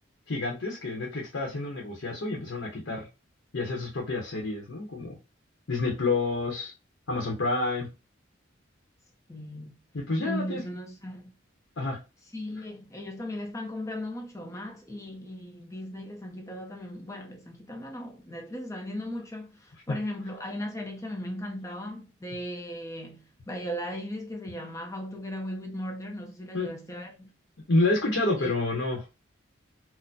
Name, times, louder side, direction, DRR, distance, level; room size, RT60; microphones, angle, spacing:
voice 1, 0.3-3.1 3.5-5.2 5.7-6.7 7.1-7.9 9.9-10.6 11.8-12.0 19.9-20.0 26.5-26.7 27.7-29.2, left 2 dB, 75° left, 0.8 m, -29 dB
voice 2, 9.3-9.8 10.2-11.3 12.3-27.3 28.4-28.5, left 1 dB, 15° left, 0.6 m, -37 dB
4.2 x 2.1 x 2.7 m
head